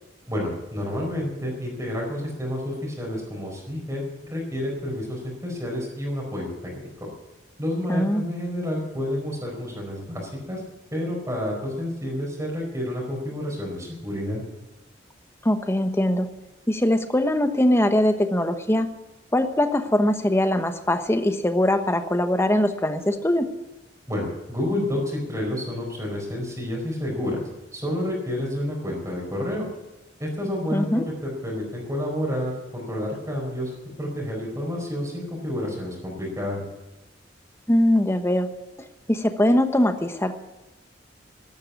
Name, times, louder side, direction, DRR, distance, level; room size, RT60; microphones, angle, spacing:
voice 1, 0.3-7.1 7.6-10.6 10.9-14.4 24.1-27.4 27.7-29.7 30.2-33.7 34.0-36.6, left 1 dB, 20° right, -2 dB, 4.7 m, -29 dB
voice 2, 7.9-8.3 15.4-16.3 16.7-18.9 19.3-23.5 30.7-31.0 37.7-38.5 39.1-40.4, left 1 dB, 15° left, 8 dB, 1.1 m, -21 dB
12.5 x 12.5 x 8.2 m, 1.0 s
head